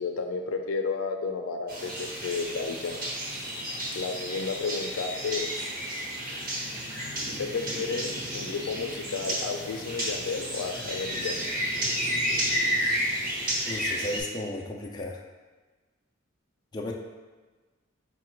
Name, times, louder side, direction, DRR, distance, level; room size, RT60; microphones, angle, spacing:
voice 1, 0.0-3.0 3.9-5.7 7.3-11.7, left 4 dB, 85° left, 4 dB, 0.4 m, -32 dB
sound 1, 1.7-14.2, equal, 45° right, 1.1 m, -31 dB
voice 2, 13.6-15.2 16.7-16.9, left 1 dB, 20° left, -1 dB, 0.3 m, -34 dB
4.8 x 2.2 x 4.3 m, 1.3 s
head